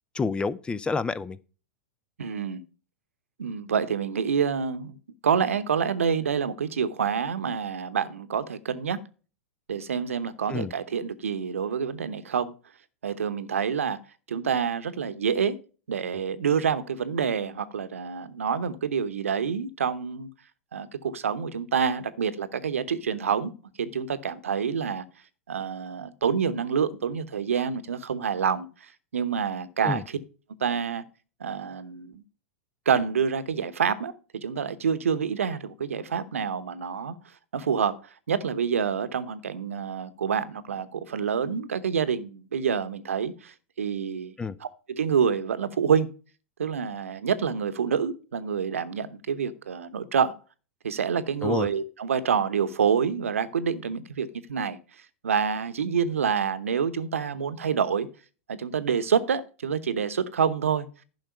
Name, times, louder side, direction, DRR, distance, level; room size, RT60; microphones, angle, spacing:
voice 1, 0.1-1.4 10.5-10.7 29.8-30.0 44.4-44.6 51.4-51.7, left 4 dB, 15° left, 0.5 m, -28 dB
voice 2, 2.2-2.6 3.4-5.0 5.2-9.0 9.7-12.5 13.0-14.0 14.3-15.6 15.9-20.3 20.7-23.5 23.8-25.1 25.5-30.2 30.6-31.0 31.4-32.2 32.9-37.2 37.5-38.0 38.3-44.3 44.6-46.1 46.6-50.4 50.8-54.8 55.2-58.1 58.5-60.9, right 7 dB, 75° right, 0.9 m, -27 dB
10.5 x 6.0 x 5.6 m
figure-of-eight pair, 95°, 7 cm